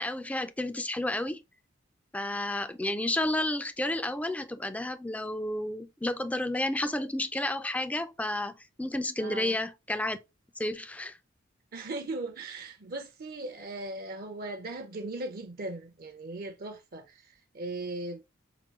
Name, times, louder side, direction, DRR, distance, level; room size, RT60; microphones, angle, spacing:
voice 1, 0.0-1.4 2.1-10.2 10.6-11.2, left 1 dB, 5° left, 0.3 m, -31 dB
voice 2, 9.2-9.6 11.7-18.2, right 2 dB, 50° right, 0.6 m, -38 dB
5.9 x 2.3 x 3.0 m
head